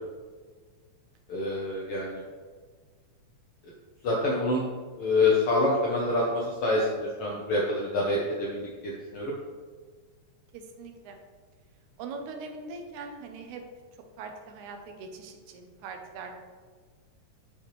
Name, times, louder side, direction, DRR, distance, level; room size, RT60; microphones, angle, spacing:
voice 1, 1.3-2.2 3.6-3.7 4.0-4.6 5.0-9.3, left 2 dB, 75° left, -3 dB, 1.3 m, -26 dB
voice 2, 10.5-11.2 12.0-13.6 14.2-16.4, right 4 dB, 80° right, 5 dB, 2.0 m, -41 dB
6.9 x 5.7 x 3.1 m, 1.5 s
omnidirectional pair, 3.6 m